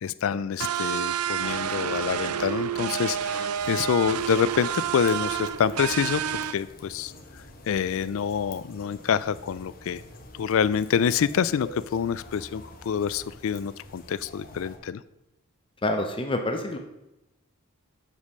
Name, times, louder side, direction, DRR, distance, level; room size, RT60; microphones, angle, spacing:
voice 1, 0.0-6.2 6.5-7.1 7.7-10.0 10.4-15.0, left 7 dB, 65° left, 16 dB, 0.3 m, -26 dB
sound 1, 0.6-6.5, right 9 dB, 85° right, 0.4 m, -29 dB
sound 2, 3.5-14.8, left 1 dB, 40° left, 1.1 m, -47 dB
voice 2, 15.8-16.8, left 1 dB, 25° left, 5 dB, 0.6 m, -27 dB
8.2 x 5.1 x 5.4 m, 0.92 s
head